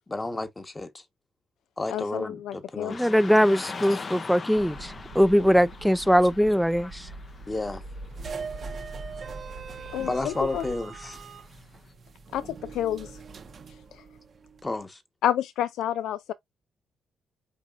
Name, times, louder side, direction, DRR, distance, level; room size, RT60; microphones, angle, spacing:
voice 1, 0.1-0.9 1.8-3.1 7.5-7.8 10.0-11.2 14.6-15.0, left 2 dB, 20° left, 1.1 m, -31 dB
voice 2, 1.9-3.0 9.9-10.6 12.3-13.2 13.9-14.0 15.2-16.3, left 11 dB, 80° left, 0.4 m, -29 dB
Car passing by / Traffic noise roadway noise, 2.9-11.9, left 4 dB, 35° left, 0.7 m, -43 dB
voice 3, 2.9-7.1, equal, ahead, 0.4 m, -21 dB
sound 1, 4.6-10.8, right 2 dB, 70° right, 1.0 m, -44 dB
sound 2, 8.1-14.7, right 5 dB, 45° right, 0.8 m, -41 dB
5.0 x 4.1 x 2.4 m
cardioid pair, 90°, 0 cm